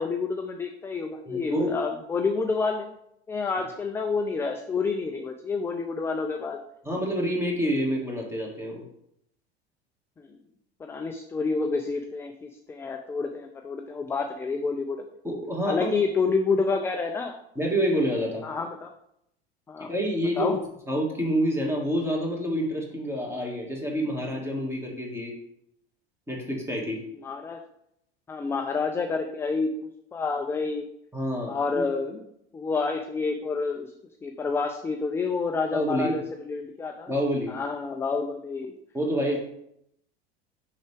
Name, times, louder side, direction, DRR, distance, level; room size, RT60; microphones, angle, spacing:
voice 1, 0.0-2.9 3.3-6.6 10.2-10.3 10.8-15.0 15.7-17.4 18.4-18.9 19.7-19.9 20.4-20.6 27.2-27.6 28.3-29.7 30.1-30.9 31.5-32.2 32.5-33.9 34.2-37.1 37.5-38.7, left 4 dB, 10° left, 4 dB, 0.3 m, -29 dB
voice 2, 1.3-1.8 6.9-8.8 15.2-15.9 17.6-18.4 19.9-20.5 20.9-25.3 26.3-27.0 31.1-31.9 35.7-36.2 37.1-37.5 38.9-39.4, equal, 10° right, -1 dB, 1.9 m, -27 dB
6.3 x 5.7 x 3.4 m, 0.75 s
figure-of-eight pair, 80°, 33 cm